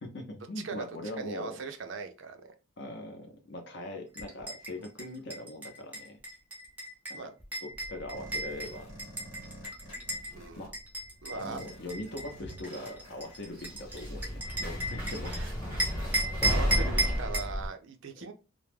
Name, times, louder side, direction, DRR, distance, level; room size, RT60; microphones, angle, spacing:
voice 1, 0.0-1.6 2.8-6.2 7.1-7.2 7.6-8.9 10.6-10.7 11.3-15.4, left 1 dB, 55° left, 4 dB, 0.6 m, -41 dB
voice 2, 1.2-2.5 7.1-7.3 10.3-10.7 11.2-11.6 15.3-15.5 16.4-18.3, right 5 dB, 60° right, 7 dB, 0.4 m, -40 dB
sound 1, 4.1-10.3 10.7-15.4 15.8-17.5, right 1 dB, 10° right, 0.5 m, -35 dB
sound 2, 7.7-9.8 10.0-10.7 11.8-11.9 13.6-17.7, equal, 20° left, 0.9 m, -33 dB
sound 3, 8.1-10.7 11.4-16.1, equal, 85° left, 1.0 m, -51 dB
2.2 x 2.0 x 3.2 m, 0.32 s
head